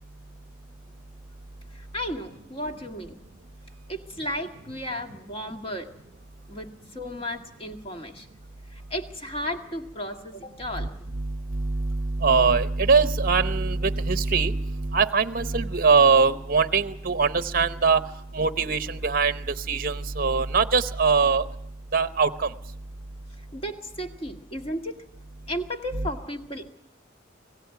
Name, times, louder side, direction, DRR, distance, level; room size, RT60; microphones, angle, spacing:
voice 1, 1.7-3.2 3.9-5.9 6.5-6.7 6.9-8.3 8.7-10.9 23.5-25.0 25.5-26.7, equal, 30° left, 4 dB, 1.9 m, -34 dB
voice 2, 11.1-18.1 18.3-21.5 21.9-22.5 25.9-26.1, right 4 dB, 45° right, 11 dB, 0.8 m, -22 dB
26.0 x 17.5 x 5.7 m, 0.82 s
head